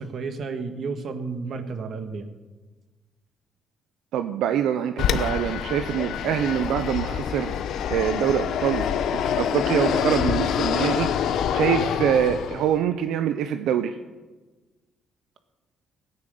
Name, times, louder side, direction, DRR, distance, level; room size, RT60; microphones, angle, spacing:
voice 1, 0.0-2.3, right 4 dB, 60° right, 7 dB, 1.8 m, -32 dB
voice 2, 4.1-7.6 7.9-8.9 9.1-13.9, right 9 dB, 85° right, 8 dB, 0.7 m, -25 dB
Fixed-wing aircraft airplane, 5.0-12.8, left 8 dB, 80° left, 0.9 m, -26 dB
17.0 x 9.6 x 6.7 m, 1.2 s
cardioid pair, 90°, 0 cm